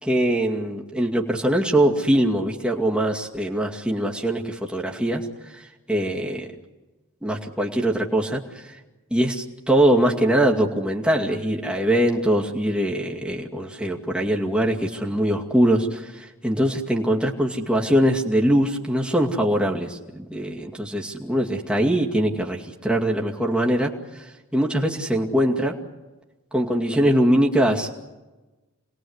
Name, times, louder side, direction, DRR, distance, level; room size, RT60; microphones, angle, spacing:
voice 1, 0.0-5.3 5.5-6.5 7.2-8.4 9.1-23.9 24.5-25.8 26.5-27.9, right 1 dB, 5° right, -1 dB, 2.3 m, -22 dB
28.0 x 21.0 x 8.1 m, 1.1 s
head